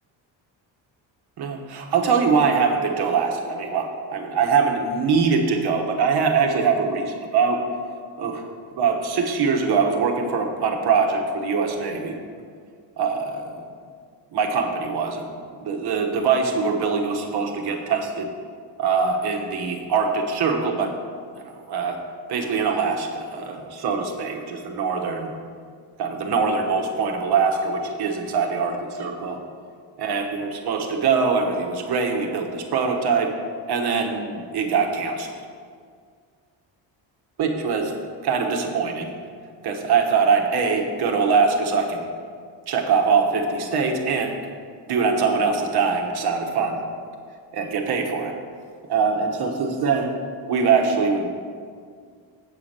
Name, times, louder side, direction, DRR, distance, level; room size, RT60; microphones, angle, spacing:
voice 1, 1.4-7.6 8.2-8.4 8.7-12.2 13.0-13.6 14.3-15.3 15.6-18.3 18.8-20.9 21.3-22.0 22.3-25.3 26.0-29.4 30.0-33.3 33.7-35.4 37.4-37.9 38.2-39.1 39.6-42.0 42.7-44.4 44.9-46.8 47.5-48.3 48.9-50.1 50.5-51.3, right 5 dB, 55° right, 2 dB, 1.1 m, -23 dB
8.3 x 5.7 x 6.5 m, 2.1 s
cardioid pair, 170°, 47 cm